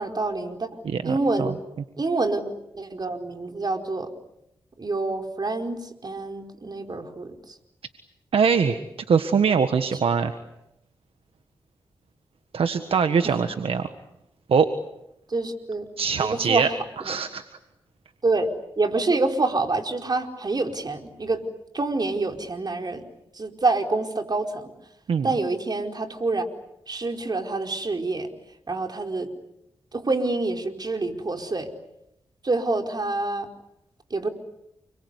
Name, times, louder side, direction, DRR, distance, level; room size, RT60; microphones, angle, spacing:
voice 1, 0.0-1.6 2.0-2.5 2.7-4.1 4.8-7.5 13.2-13.4 15.3-15.8 16.2-16.7 17.0-17.2 18.2-18.5 18.8-21.4 21.7-23.0 23.3-24.7 25.2-26.5 26.9-28.3 28.7-29.3 29.9-31.7 32.4-33.5 34.1-34.3, right 3 dB, 45° right, 4 dB, 4.7 m, -27 dB
voice 2, 0.8-1.5 8.3-8.8 9.1-10.4 12.5-13.8 14.5-14.7 16.0-16.7 17.0-17.4 25.1-25.3, right 6 dB, 75° right, 8 dB, 1.6 m, -22 dB
30.0 x 23.0 x 8.3 m, 0.83 s
cardioid pair, 50°, 10 cm